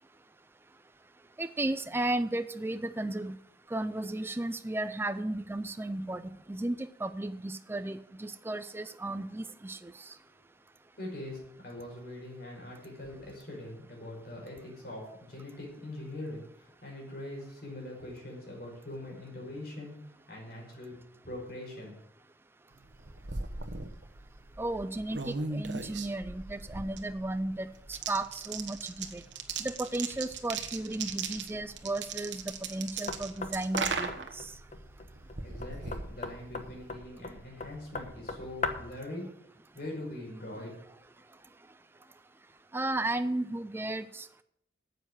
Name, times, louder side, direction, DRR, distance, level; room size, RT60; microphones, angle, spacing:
voice 1, 1.4-3.4 3.7-6.2 6.5-10.1 24.6-29.2 29.6-34.5 42.7-44.4, right 2 dB, 15° right, 11 dB, 0.4 m, -34 dB
voice 2, 11.0-20.0 20.3-21.0 21.2-22.0 35.4-39.3 39.7-40.7, left 1 dB, 55° left, -1 dB, 5.4 m, -42 dB
sound 1, 22.8-36.9, right 5 dB, 90° right, 1.2 m, -39 dB
Knock, 33.1-39.0, left 4 dB, 40° left, 1.0 m, -40 dB
9.5 x 8.0 x 7.7 m, 0.73 s
head